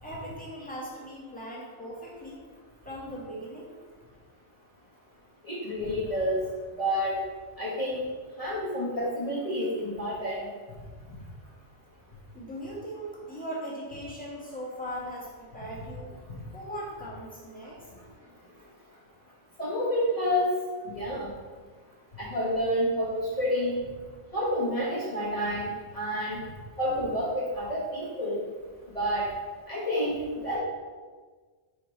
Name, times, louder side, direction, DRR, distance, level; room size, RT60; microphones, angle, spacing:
voice 1, 0.0-2.4 2.8-3.7 12.3-16.1 16.5-17.8, equal, 5° left, -6 dB, 1.8 m, -39 dB
voice 2, 5.4-7.2 7.5-8.1 8.4-11.2 11.4-11.5 16.3-16.5 17.6-19.0 19.6-20.5 20.8-21.3 22.1-23.8 24.3-26.4 26.8-28.5 28.9-29.4 29.7-30.6, equal, 30° left, -9 dB, 1.6 m, -30 dB
5.5 x 5.1 x 5.4 m, 1.5 s
omnidirectional pair, 1.1 m